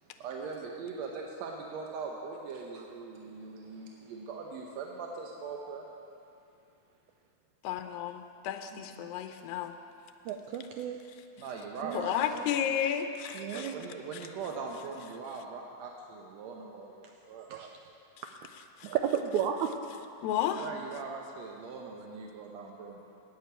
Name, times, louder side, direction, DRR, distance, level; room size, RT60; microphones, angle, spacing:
voice 1, 0.2-5.9 11.4-12.5 13.5-17.5 20.6-23.0, right 4 dB, 75° right, 0 dB, 1.6 m, -41 dB
voice 2, 7.6-9.7 11.9-13.7 14.1-14.2 18.8-18.9 20.2-20.7, left 9 dB, 85° left, 7 dB, 2.4 m, -32 dB
voice 3, 8.7-9.1 10.2-11.0 11.8-12.1 13.3-13.9 17.5-17.7 18.8-19.7, right 9 dB, 90° right, 4 dB, 1.7 m, -33 dB
9.7 x 8.9 x 9.0 m, 2.6 s
omnidirectional pair, 4.0 m